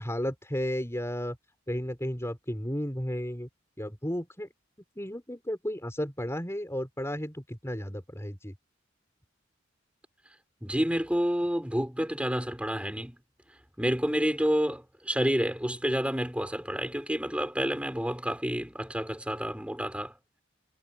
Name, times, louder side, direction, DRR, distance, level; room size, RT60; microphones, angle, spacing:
voice 1, 0.0-1.4 1.7-3.5 3.8-4.5 5.0-8.5, equal, 15° left, 6.2 m, -33 dB
voice 2, 10.6-13.2 13.8-20.2, equal, 5° right, 5.2 m, -29 dB
head